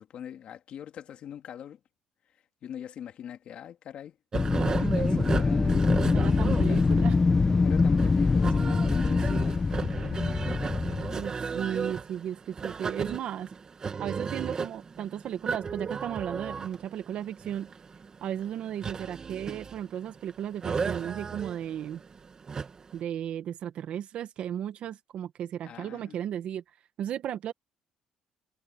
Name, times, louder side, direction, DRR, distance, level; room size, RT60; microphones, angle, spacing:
voice 1, 0.0-1.8 2.6-4.2 4.5-5.8 6.6-6.8 7.5-10.8 25.6-26.2, left 9 dB, 55° left, 2.7 m, -42 dB
Wind, 4.3-11.3, left 4 dB, 25° left, 1.2 m, -24 dB
sound 1, 4.3-23.0, right 5 dB, 30° right, 2.1 m, -35 dB
voice 2, 6.1-7.2 11.1-13.5 14.0-17.7 18.2-22.0 22.9-26.6 27.0-27.5, right 10 dB, 60° right, 1.5 m, -35 dB
cardioid pair, 115°, 2 cm